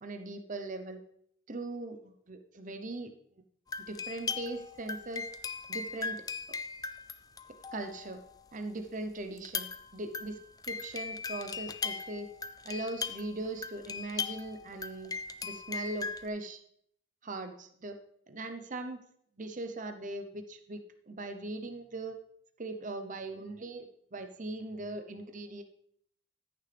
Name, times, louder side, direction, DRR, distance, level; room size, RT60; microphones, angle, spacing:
voice 1, 0.0-1.0 1.5-3.1 3.9-5.2 5.7-6.2 6.5-6.6 7.5-8.2 8.5-9.7 9.9-10.4 10.7-12.3 12.6-15.1 15.4-16.6 17.2-18.0 18.3-19.0 19.4-20.8 21.1-22.2 22.6-25.6, right 2 dB, 35° right, 7 dB, 0.8 m, -40 dB
sound 1, 3.7-8.3 9.4-16.3, left 5 dB, 15° left, 0.3 m, -39 dB
14.5 x 6.7 x 3.4 m, 0.69 s
head